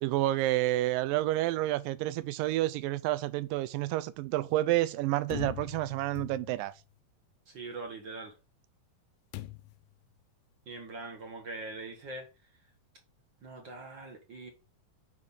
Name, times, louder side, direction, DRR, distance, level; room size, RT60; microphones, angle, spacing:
voice 1, 0.0-6.7, right 16 dB, 80° right, 2.3 m, -29 dB
sound 1, 5.3-6.8 9.3-9.9, left 14 dB, 75° left, 2.0 m, -42 dB
voice 2, 7.5-8.3 10.7-12.3 13.4-14.5, right 3 dB, 55° right, 1.4 m, -42 dB
6.1 x 5.3 x 5.5 m
omnidirectional pair, 4.0 m